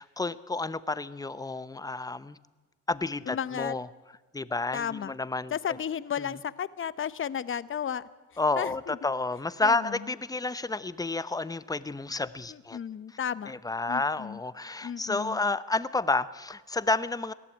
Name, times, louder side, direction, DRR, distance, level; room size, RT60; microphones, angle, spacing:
voice 1, 0.0-2.4 2.9-3.9 4.3-5.5 8.4-12.8 13.1-13.2 13.5-17.3, left 3 dB, 10° left, 16 dB, 0.8 m, -30 dB
voice 2, 3.3-3.7 4.7-5.1 5.5-8.0 8.6-9.0 9.6-10.0 12.5-13.5 13.9-14.4 14.8-15.4, left 8 dB, 40° left, 16 dB, 0.9 m, -33 dB
19.5 x 14.0 x 9.8 m, 1.3 s
cardioid pair, 90°, 30 cm